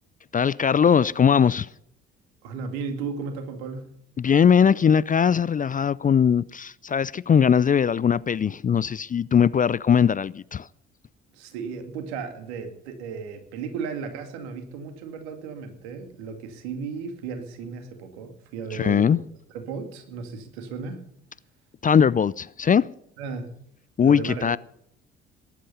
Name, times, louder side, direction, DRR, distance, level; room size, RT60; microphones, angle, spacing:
voice 1, 0.3-1.7 4.2-10.7 18.7-19.2 21.8-22.9 24.0-24.6, left 7 dB, 25° left, 0.5 m, -20 dB
voice 2, 2.4-3.9 11.3-19.2 19.5-21.0 23.2-23.5 24.0-24.5, right 5 dB, 75° right, 2.5 m, -35 dB
18.5 x 11.5 x 5.6 m
figure-of-eight pair, 50°, 33 cm